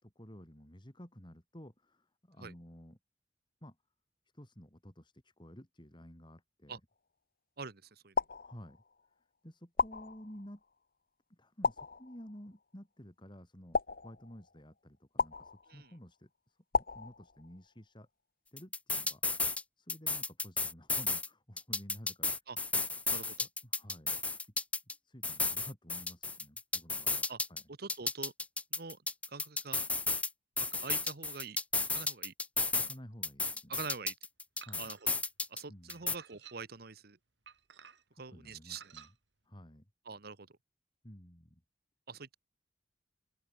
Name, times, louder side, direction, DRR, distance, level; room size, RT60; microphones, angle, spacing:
voice 1, 0.0-3.0 3.6-3.8 4.3-6.8 8.4-8.8 9.4-10.6 11.3-18.1 18.5-22.3 23.4-24.5 24.9-27.7 32.7-33.8 34.6-34.9 35.7-36.1 38.3-39.1 39.4-39.9 41.0-41.6, equal, 25° left, 5.0 m, -53 dB
voice 2, 7.6-8.1 15.7-15.9 22.5-22.6 23.1-23.5 27.3-27.4 27.8-28.3 28.7-29.0 29.3-29.9 30.8-31.6 31.8-32.3 33.7-34.1 34.8-35.1 35.5-37.2 38.2-38.8 40.1-40.5 42.1-42.4, right 4 dB, 60° right, 1.3 m, -44 dB
sound 1, 8.2-9.1 9.8-10.7 11.6-12.5 13.7-14.6 15.2-16.0 16.7-17.7, left 4 dB, 55° left, 1.5 m, -35 dB
sound 2, 18.6-19.6 19.9-21.3 21.6-24.9 25.2-27.6 27.9-30.3 30.6-32.9 33.2-35.6 35.9-36.1, left 3 dB, 10° left, 0.4 m, -33 dB
sound 3, 34.6-35.2 35.9-36.8 37.5-38.2 38.7-39.1, right 7 dB, 85° right, 2.7 m, -54 dB
open air
head